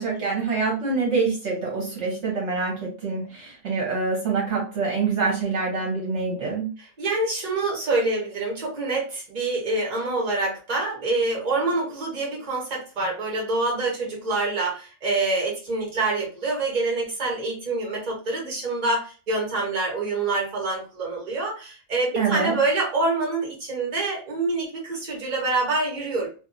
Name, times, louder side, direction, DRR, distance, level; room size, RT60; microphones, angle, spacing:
voice 1, 0.0-6.7 22.2-22.6, right 4 dB, 65° right, -2 dB, 1.2 m, -26 dB
voice 2, 6.8-26.3, right 2 dB, 35° right, -2 dB, 1.1 m, -26 dB
2.6 x 2.3 x 2.5 m, 0.35 s
omnidirectional pair, 1.3 m